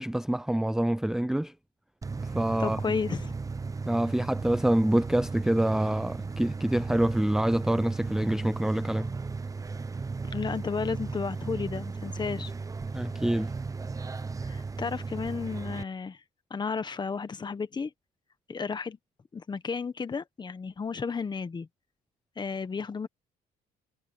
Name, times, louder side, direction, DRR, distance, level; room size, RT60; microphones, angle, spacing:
voice 1, 0.0-1.5 2.3-2.8 3.9-9.1 12.9-13.5, right 1 dB, 5° right, 0.5 m, -26 dB
sound 1, 2.0-15.8, right 4 dB, 20° right, 0.9 m, -36 dB
voice 2, 2.6-3.4 10.2-12.5 14.4-16.2 16.5-17.9 18.5-19.0 19.3-21.7 22.4-23.1, left 5 dB, 25° left, 1.4 m, -33 dB
cardioid pair, 110°, 17 cm